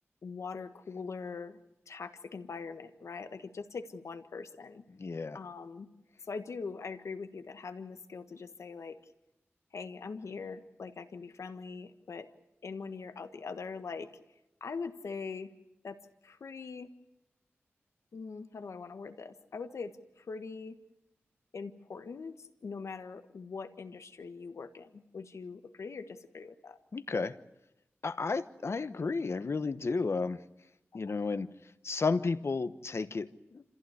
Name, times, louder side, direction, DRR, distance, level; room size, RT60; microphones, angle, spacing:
voice 1, 0.2-1.6 1.9-4.8 5.3-5.9 6.3-9.0 9.7-12.3 12.6-14.1 14.6-15.5 15.8-16.0 16.2-16.9 18.1-20.8 21.5-26.8 31.1-31.2, left 4 dB, 85° left, 8 dB, 1.4 m, -42 dB
voice 2, 4.9-5.4 26.9-27.3 28.0-30.4 30.9-31.6 31.8-33.6, left 4 dB, 65° left, 11 dB, 1.2 m, -32 dB
27.0 x 15.5 x 9.7 m, 0.92 s
cardioid pair, 40°, 5 cm